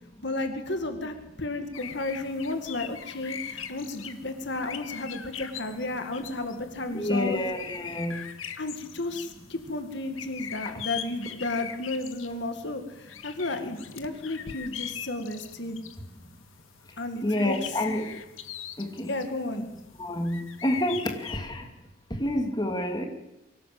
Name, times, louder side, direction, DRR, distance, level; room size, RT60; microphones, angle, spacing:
voice 1, 0.2-7.4 8.6-15.8 17.0-17.8 19.1-19.7, left 2 dB, 60° left, 7 dB, 2.1 m, -33 dB
sound 1, 1.7-21.4, left 8 dB, 90° left, 1.8 m, -42 dB
voice 2, 6.9-8.2 17.2-18.1 18.8-19.1 20.0-21.6 22.2-23.1, left 1 dB, 20° left, 4 dB, 2.6 m, -28 dB
24.0 x 17.0 x 7.8 m, 0.97 s
head